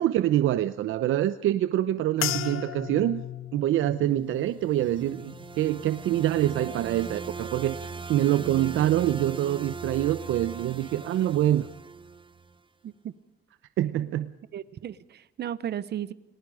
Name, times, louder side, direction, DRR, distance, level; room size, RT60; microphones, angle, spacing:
voice 1, 0.0-3.2 3.5-11.7 13.8-14.3, right 13 dB, 80° right, 12 dB, 0.8 m, -25 dB
sound 1, 2.2-6.7 7.1-7.7 8.3-8.5, left 12 dB, 85° left, 1.3 m, -37 dB
sound 2, 4.4-12.6, right 4 dB, 25° right, 0.7 m, -40 dB
voice 2, 14.5-16.1, right 10 dB, 55° right, 16 dB, 1.0 m, -35 dB
29.5 x 19.5 x 5.0 m, 0.88 s
cardioid pair, 105°, 20 cm